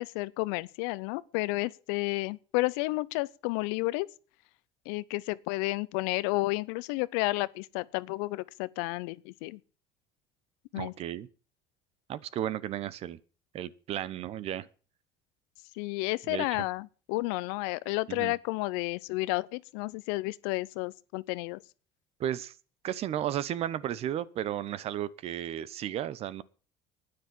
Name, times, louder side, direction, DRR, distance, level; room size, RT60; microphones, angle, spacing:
voice 1, 0.0-4.1 4.9-9.6 10.7-10.9 15.8-21.6, left 22 dB, 85° left, 0.7 m, -31 dB
voice 2, 10.8-11.3 12.1-13.2 13.5-14.7 16.3-16.6 18.1-18.3 22.2-22.5 22.8-26.4, right 11 dB, 55° right, 1.0 m, -34 dB
10.0 x 9.8 x 8.7 m
supercardioid pair, 100°, 12 cm